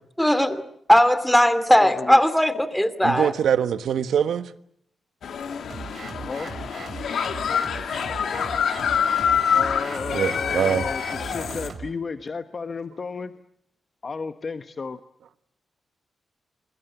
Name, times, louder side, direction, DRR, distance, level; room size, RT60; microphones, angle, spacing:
voice 1, 0.2-0.6 0.9-3.3, equal, 5° left, 2.6 m, -18 dB
voice 2, 1.8-2.2 6.1-6.5 9.5-13.3 14.0-15.0, left 4 dB, 40° left, 1.0 m, -33 dB
voice 3, 3.0-4.5 10.1-10.8, right 8 dB, 85° right, 1.3 m, -23 dB
sound 1, 5.2-11.7, left 7 dB, 75° left, 2.5 m, -26 dB
sound 2, 5.7-11.9, right 5 dB, 55° right, 4.0 m, -39 dB
27.0 x 23.0 x 8.0 m
cardioid pair, 105°, 0 cm